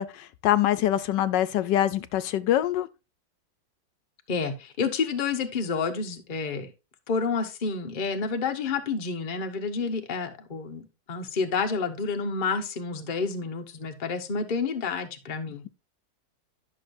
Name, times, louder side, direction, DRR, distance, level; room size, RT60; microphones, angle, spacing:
voice 1, 0.0-2.9, left 12 dB, 80° left, 1.2 m, -24 dB
voice 2, 4.3-6.7 7.1-10.8 11.1-15.6, left 5 dB, 35° left, 0.9 m, -29 dB
10.5 x 6.3 x 2.6 m
omnidirectional pair, 1.9 m